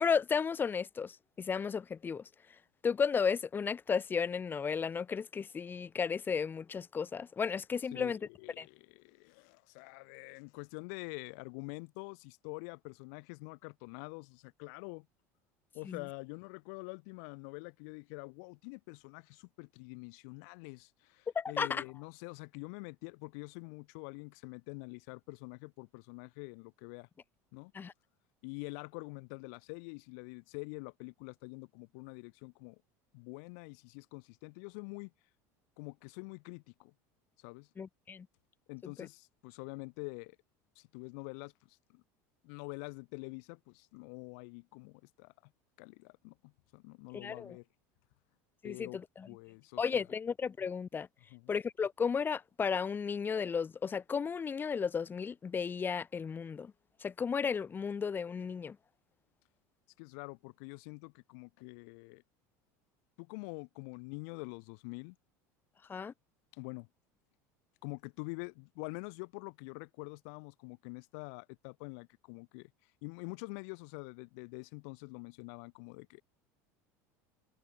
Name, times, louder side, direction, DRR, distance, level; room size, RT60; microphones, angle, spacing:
voice 1, 0.0-2.2 2.8-8.2 8.6-8.7 15.9-16.0 21.4-21.8 27.7-27.9 37.8-38.3 38.8-39.1 47.1-47.6 48.6-49.3 49.8-51.1 51.5-56.7 57.0-58.8 65.9-66.1, left 6 dB, 25° left, 0.6 m, -34 dB
voice 2, 7.9-15.1 15.7-27.1 27.5-27.7 28.4-32.8 33.1-35.1 35.8-36.9 37.4-37.7 38.7-40.4 40.8-42.0 42.4-45.3 45.8-47.6 48.6-49.0 49.3-50.0 51.3-51.5 60.0-62.2 63.2-65.2 66.5-66.9 67.8-76.2, left 36 dB, 70° left, 1.1 m, -46 dB
supercardioid pair, 105°, 9 cm